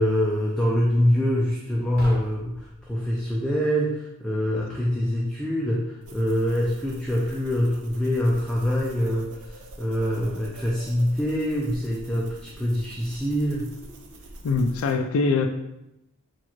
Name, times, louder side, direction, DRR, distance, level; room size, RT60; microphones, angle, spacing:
voice 1, 0.0-13.7, equal, 5° left, -4 dB, 0.4 m, -25 dB
sound 1, 1.9-3.4, right 1 dB, 45° right, 0.7 m, -41 dB
sound 2, 6.0-14.9, right 1 dB, 90° right, 0.7 m, -45 dB
voice 2, 14.4-15.5, left 4 dB, 70° left, 6 dB, 0.3 m, -22 dB
4.4 x 2.4 x 4.3 m, 0.88 s
head